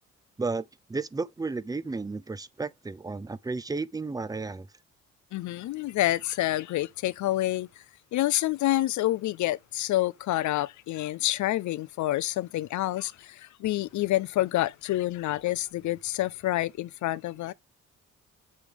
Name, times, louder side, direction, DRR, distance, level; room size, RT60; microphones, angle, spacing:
voice 1, 0.9-4.7, right 3 dB, 10° right, 0.5 m, -33 dB
voice 2, 5.3-7.7 8.1-17.5, left 15 dB, 75° left, 0.6 m, -28 dB
7.6 x 3.4 x 4.9 m
cardioid pair, 90°, 30 cm